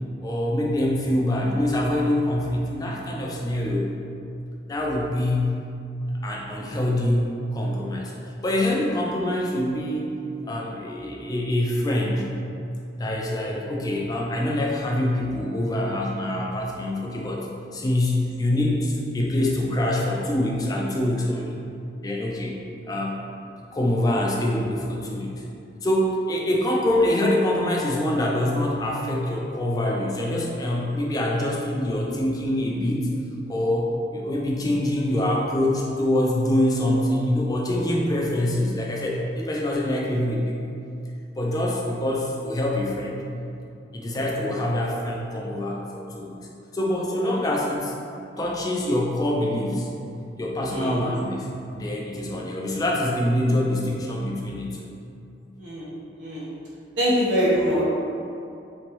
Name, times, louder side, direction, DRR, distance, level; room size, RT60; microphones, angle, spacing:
voice 1, 0.2-3.9 4.7-5.6 6.2-8.1 8.4-10.1 10.4-12.3 13.0-17.5 17.7-21.6 22.0-22.5 22.9-25.3 25.8-33.1 33.5-40.7 41.4-43.3 43.9-46.3 46.7-47.9 48.4-49.9 50.4-54.9, left 1 dB, 20° left, -2 dB, 0.3 m, -25 dB
voice 2, 50.7-51.1 55.6-56.5 57.0-57.8, equal, 85° right, -7 dB, 1.0 m, -24 dB
3.4 x 3.0 x 3.0 m, 2.6 s
head